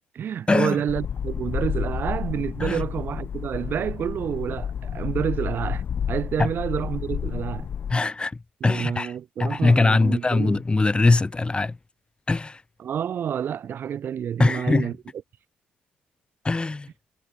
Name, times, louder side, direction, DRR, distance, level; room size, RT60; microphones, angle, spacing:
voice 1, 0.1-7.7 8.6-10.6 12.8-15.0, right 9 dB, 60° right, 4.3 m, -29 dB
sound 1, 0.9-8.0, left 8 dB, 55° left, 3.3 m, -30 dB
voice 2, 7.9-9.1 9.4-11.8 12.3-12.6 14.4-14.9 16.4-16.9, left 3 dB, 25° left, 7.2 m, -21 dB
hypercardioid pair, 55°, 4 cm